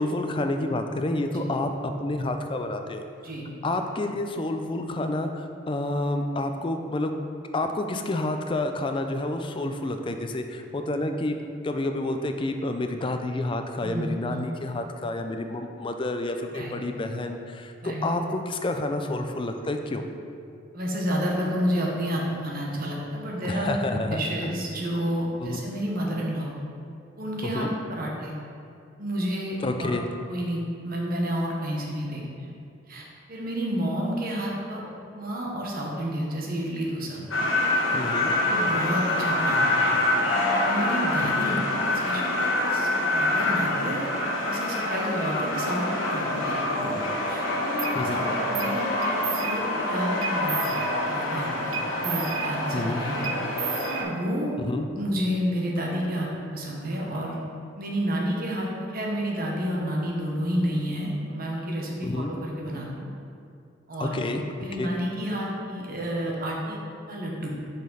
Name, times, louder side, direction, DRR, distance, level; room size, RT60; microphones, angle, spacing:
voice 1, 0.0-3.0 3.6-7.1 7.5-11.3 11.6-20.0 23.4-24.2 25.4-25.6 27.4-27.7 29.6-30.1 37.9-38.3 41.5-41.6 47.9-48.2 52.7-53.0 54.6-54.9 62.0-62.3 64.0-64.4 64.8-64.9, left 2 dB, 25° left, 6 dB, 0.4 m, -29 dB
voice 2, 13.8-14.5 16.5-16.7 17.8-18.1 20.7-26.5 27.2-28.3 29.0-29.9 30.3-32.5 32.9-37.2 38.4-40.0 40.6-44.1 44.4-47.0 47.3-50.8 51.1-53.3 53.9-54.6 54.9-57.4 57.8-63.1 63.9-64.2 64.6-66.8 67.1-67.5, equal, 50° right, -2 dB, 1.1 m, -30 dB
sound 1, 37.3-54.0, left 2 dB, 85° left, 1.1 m, -26 dB
sound 2, 47.8-48.0 48.6-48.8 49.0-49.8 50.2-51.2 51.7-52.9 53.2-54.5, right 8 dB, 90° right, 0.6 m, -34 dB
6.7 x 5.2 x 3.9 m, 2.5 s
head